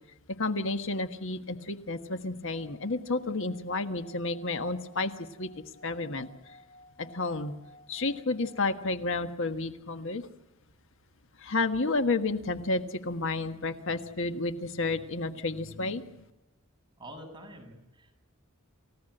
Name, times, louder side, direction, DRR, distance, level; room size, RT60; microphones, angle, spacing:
voice 1, 0.4-6.3 7.0-7.5 7.9-10.3 11.4-16.2, left 3 dB, 65° left, 8 dB, 1.5 m, -31 dB
Singing / Glass, 2.4-9.0, left 1 dB, 20° left, 7.0 m, -57 dB
voice 2, 17.0-18.2, right 1 dB, 20° right, 3 dB, 6.9 m, -47 dB
29.5 x 16.5 x 7.9 m, 1.0 s
head